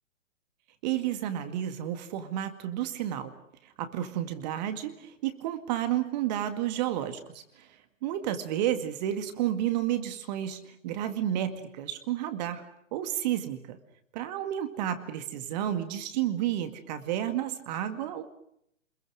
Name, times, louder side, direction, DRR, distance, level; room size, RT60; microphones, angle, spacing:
voice 1, 0.8-3.3 3.6-12.6 12.9-13.8 14.1-18.2, right 11 dB, 35° right, 9 dB, 2.1 m, -31 dB
28.5 x 22.0 x 6.4 m, 0.72 s
figure-of-eight pair, 125°, 38 cm